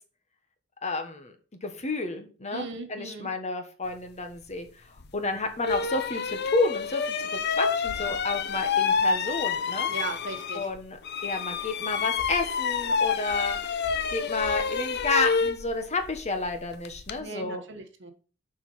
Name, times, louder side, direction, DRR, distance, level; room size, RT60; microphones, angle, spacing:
voice 1, 0.8-1.3 1.6-4.7 5.1-9.9 10.5-13.6 14.1-17.6, left 3 dB, 35° left, 6 dB, 1.4 m, -30 dB
voice 2, 2.5-3.3 9.9-10.7 17.2-18.1, right 3 dB, 65° right, 6 dB, 1.4 m, -37 dB
sound 1, 5.0-5.1 5.6-10.8 11.0-17.2, left 5 dB, 55° left, 0.7 m, -28 dB
7.1 x 5.6 x 5.6 m, 0.37 s
head